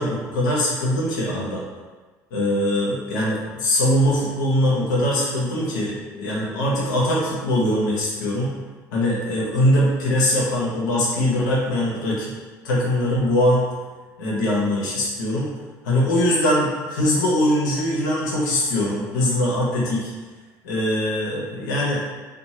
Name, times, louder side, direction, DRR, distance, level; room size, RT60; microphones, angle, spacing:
voice 1, 0.0-1.6 2.3-8.5 8.9-12.3 12.6-13.6 14.2-15.5 15.8-20.1 20.6-22.0, left 1 dB, 85° left, -5 dB, 0.7 m, -22 dB
2.7 x 2.3 x 2.8 m, 1.3 s
hypercardioid pair, 70°, 10 cm